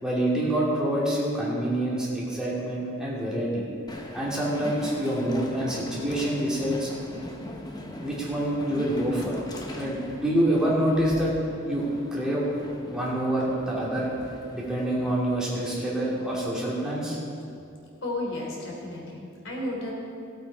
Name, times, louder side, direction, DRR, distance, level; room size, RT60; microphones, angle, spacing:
voice 1, 0.0-3.6 4.1-6.9 8.0-9.3 9.7-11.3 11.6-11.8 12.1-12.5 12.9-14.1 14.5-17.2, right 1 dB, 5° right, -7 dB, 2.7 m, -26 dB
Train, 3.9-16.4, left 1 dB, 20° left, 0.9 m, -41 dB
voice 2, 18.0-19.9, left 1 dB, 75° left, -2 dB, 3.2 m, -33 dB
16.0 x 8.5 x 4.9 m, 2.5 s
head